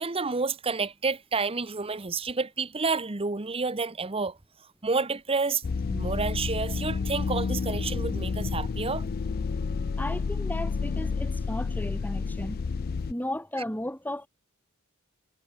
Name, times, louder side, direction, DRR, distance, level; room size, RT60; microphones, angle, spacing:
voice 1, 0.0-4.4 4.8-5.6 5.9-9.1, right 4 dB, 25° right, 1.0 m, -29 dB
sound 1, 5.6-13.1, left 4 dB, 45° left, 0.4 m, -30 dB
voice 2, 10.0-12.6 13.1-14.3, left 1 dB, 10° left, 5.7 m, -34 dB
head